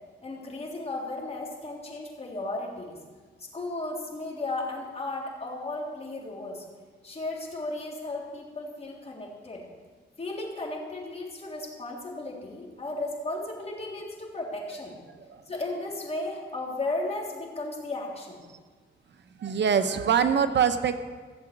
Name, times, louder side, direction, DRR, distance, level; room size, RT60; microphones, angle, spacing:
voice 1, 0.2-3.0 3.4-6.7 7.0-9.7 10.2-14.9 15.5-18.4, left 2 dB, 35° left, -2 dB, 3.5 m, -35 dB
voice 2, 15.1-15.4 19.4-21.0, right 7 dB, 70° right, 10 dB, 0.9 m, -24 dB
15.5 x 7.8 x 8.5 m, 1.5 s
cardioid pair, 100°, 19 cm